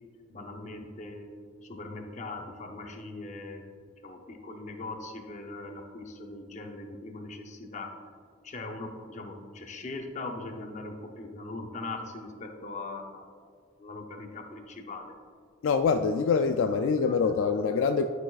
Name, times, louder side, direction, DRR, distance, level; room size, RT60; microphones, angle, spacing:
voice 1, 0.3-1.3 1.6-3.6 4.0-7.9 8.4-13.3 13.8-15.1 17.1-17.2, left 2 dB, 35° left, 4 dB, 0.7 m, -40 dB
voice 2, 15.6-18.0, left 5 dB, 65° left, 7 dB, 0.3 m, -25 dB
11.0 x 6.3 x 2.4 m, 2.1 s
head